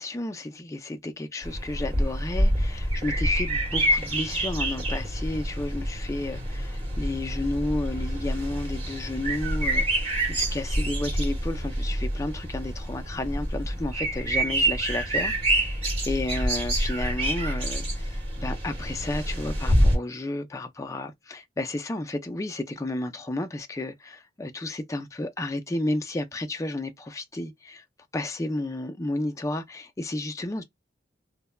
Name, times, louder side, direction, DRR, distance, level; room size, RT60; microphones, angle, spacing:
voice 1, 0.0-27.8 28.1-30.6, left 2 dB, 15° left, 0.3 m, -32 dB
sound 1, 1.4-20.0, right 1 dB, 30° right, 1.1 m, -27 dB
3.2 x 2.1 x 2.2 m
head